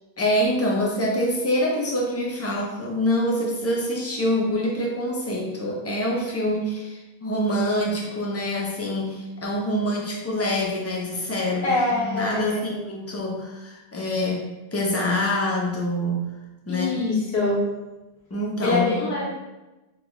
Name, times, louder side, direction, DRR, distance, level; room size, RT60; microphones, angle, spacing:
voice 1, 0.2-14.4 14.7-16.3 16.7-17.1 18.3-19.2, left 1 dB, 25° left, -2 dB, 0.3 m, -25 dB
voice 2, 11.6-12.8 16.7-17.6 18.6-19.3, left 2 dB, 80° left, -4 dB, 1.2 m, -24 dB
3.4 x 2.3 x 3.0 m, 1.1 s
omnidirectional pair, 1.1 m